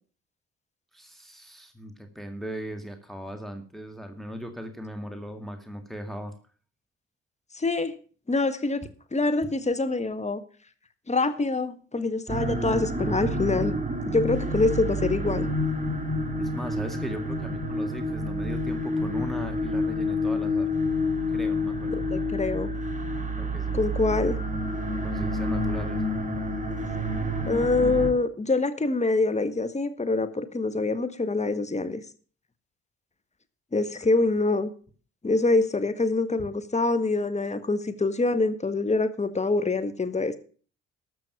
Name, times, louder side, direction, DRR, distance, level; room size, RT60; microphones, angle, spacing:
voice 1, 0.9-6.3 16.4-20.7 21.3-22.0 23.4-23.8 25.0-26.0, equal, ahead, 5 dB, 2.1 m, -38 dB
voice 2, 7.5-7.9 8.3-8.8 9.1-10.4 11.1-13.7 14.1-15.5 22.1-22.7 23.7-24.4 27.5-32.0 33.7-34.7 35.2-40.3, left 3 dB, 20° left, 10 dB, 1.6 m, -25 dB
sound 1, 12.3-28.1, left 1 dB, 25° right, 2.1 m, -28 dB
13.0 x 6.3 x 7.1 m, 0.42 s
hypercardioid pair, 45°, 32 cm